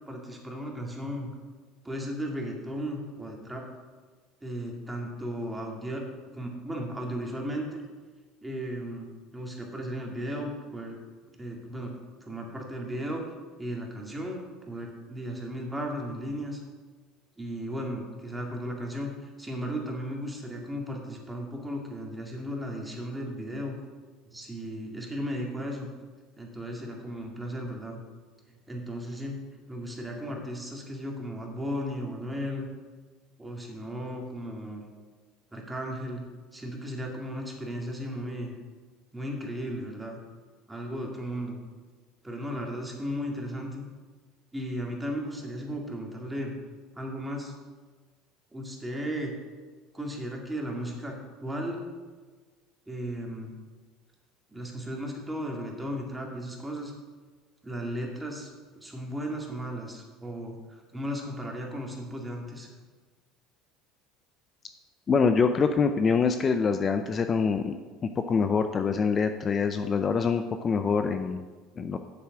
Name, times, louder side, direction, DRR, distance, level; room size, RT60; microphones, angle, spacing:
voice 1, 0.1-1.3 1.8-3.7 4.4-6.0 6.3-7.8 8.4-11.0 11.4-11.9 12.2-13.2 13.6-16.6 17.4-23.7 24.3-25.9 26.4-28.0 28.7-29.4 29.7-32.7 33.4-34.8 35.5-36.2 36.5-38.5 39.1-40.2 40.7-41.6 42.2-43.8 44.5-46.6 47.0-47.5 48.5-49.3 49.9-51.8 52.9-53.5 54.5-56.9 57.6-58.5 58.7-62.7, equal, 10° right, 0 dB, 2.2 m, -35 dB
voice 2, 65.1-67.7 68.3-71.4 71.8-72.0, left 5 dB, 35° left, 8 dB, 0.5 m, -25 dB
7.6 x 7.3 x 6.0 m, 1.4 s
supercardioid pair, 95°, 0 cm